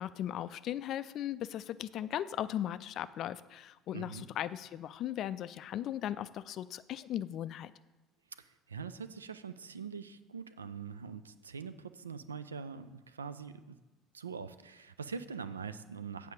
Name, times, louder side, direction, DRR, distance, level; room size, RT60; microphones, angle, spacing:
voice 1, 0.0-7.7, left 11 dB, 50° left, 15 dB, 0.3 m, -37 dB
voice 2, 3.9-4.3 8.4-13.8 14.1-16.3, right 6 dB, 80° right, 12 dB, 0.3 m, -43 dB
8.0 x 4.9 x 6.5 m, 1.1 s
figure-of-eight pair, 60°, 0 cm